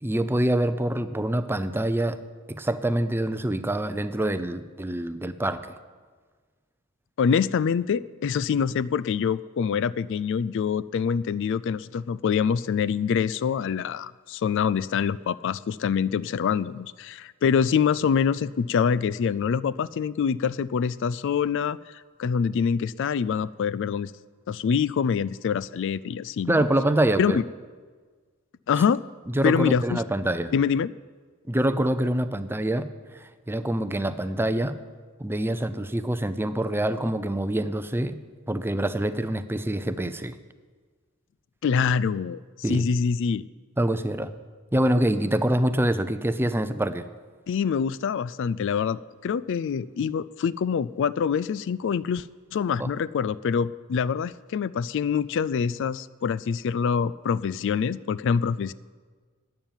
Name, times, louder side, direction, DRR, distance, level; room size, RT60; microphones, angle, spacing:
voice 1, 0.0-2.2 2.5-5.6 26.5-27.4 29.3-30.5 31.5-34.8 35.2-38.2 38.5-40.4 42.6-42.9 43.8-44.3 44.7-47.0 52.8-52.9, right 1 dB, 10° right, 12 dB, 0.5 m, -25 dB
voice 2, 7.2-24.1 24.5-26.7 27.2-27.4 28.7-29.0 29.4-30.0 30.5-30.9 41.6-42.4 42.7-43.4 47.5-58.7, left 6 dB, 60° left, 19 dB, 0.3 m, -25 dB
12.5 x 9.0 x 9.0 m, 1.5 s
head